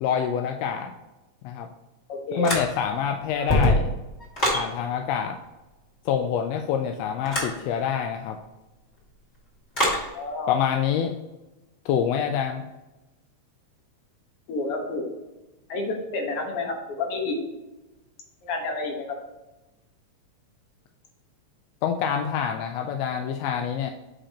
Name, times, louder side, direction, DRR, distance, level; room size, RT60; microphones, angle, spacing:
voice 1, 0.0-0.9 1.4-1.7 2.3-3.9 4.5-5.4 6.0-8.4 10.5-11.1 11.8-12.6 21.8-23.9, left 8 dB, 80° left, 4 dB, 1.6 m, -26 dB
voice 2, 2.1-2.5 10.1-10.6 14.5-15.1 15.7-17.4 18.4-19.2, left 2 dB, 55° left, 1 dB, 2.1 m, -29 dB
sound 1, 2.4-3.0 3.4-4.7 7.3-7.6 9.7-10.1, left 1 dB, 25° left, 2.1 m, -23 dB
8.5 x 5.2 x 2.9 m, 1.0 s
omnidirectional pair, 3.4 m